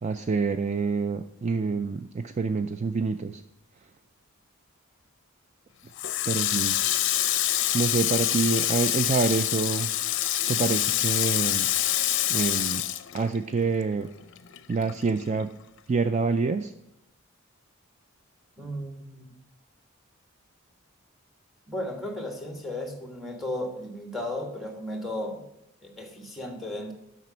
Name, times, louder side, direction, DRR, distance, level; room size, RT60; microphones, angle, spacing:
voice 1, 0.0-3.4 6.3-6.8 7.7-9.9 10.5-11.7 12.3-12.9 13.1-14.1 14.7-15.5 15.9-16.7, right 4 dB, 35° right, 8 dB, 0.3 m, -27 dB
Water tap faucet, 6.0-13.8 14.1-15.4, left 13 dB, 60° left, 0.6 m, -26 dB
voice 2, 18.6-19.3 21.7-25.5 25.8-26.9, left 1 dB, ahead, 4 dB, 1.4 m, -35 dB
7.5 x 6.0 x 7.1 m, 0.85 s
head